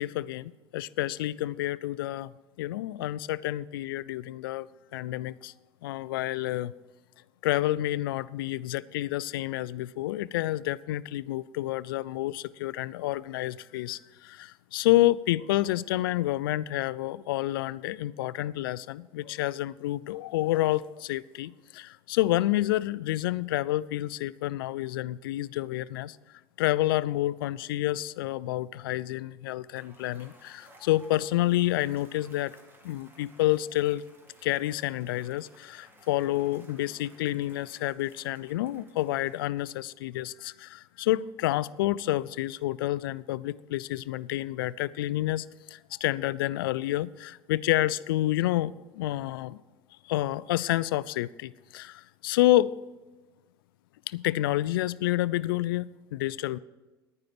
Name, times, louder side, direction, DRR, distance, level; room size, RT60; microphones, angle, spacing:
voice 1, 0.0-2.3 2.6-5.5 5.8-6.7 7.4-26.2 26.6-32.5 32.8-34.0 34.4-49.6 50.0-52.7 54.1-56.6, left 15 dB, 75° left, 20 dB, 0.4 m, -29 dB
Cheering / Applause / Crowd, 29.5-40.0, right 1 dB, 20° right, 2.1 m, -57 dB
11.0 x 9.7 x 5.9 m, 1.2 s
hypercardioid pair, 75°, 12 cm